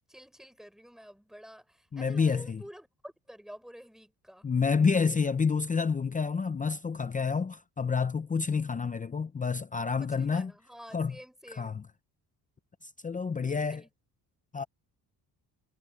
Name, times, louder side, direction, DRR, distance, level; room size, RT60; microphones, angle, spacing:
voice 1, 0.1-4.5 10.0-11.8 13.5-13.9, equal, ahead, 6.4 m, -50 dB
voice 2, 1.9-2.6 4.4-10.5 10.9-11.2 11.6-11.8 13.0-13.8 14.5-14.6, left 5 dB, 20° left, 0.6 m, -28 dB
cardioid pair, 140°, 38 cm